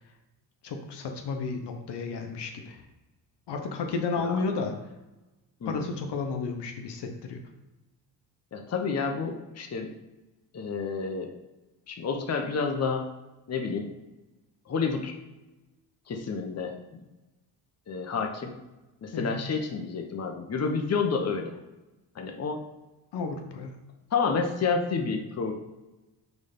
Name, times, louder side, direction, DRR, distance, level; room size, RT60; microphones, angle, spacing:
voice 1, 0.6-2.8 3.5-4.7 5.7-7.4 19.1-19.4 23.1-23.8, left 4 dB, 70° left, 4 dB, 1.0 m, -32 dB
voice 2, 8.5-9.9 10.5-11.3 11.9-13.1 13.5-13.9 14.7-15.1 16.1-17.0 17.9-18.5 19.0-21.6 22.1-22.6 24.1-25.5, left 5 dB, 35° left, 3 dB, 0.9 m, -29 dB
6.3 x 3.4 x 5.3 m, 1.0 s
cardioid pair, 95°, 42 cm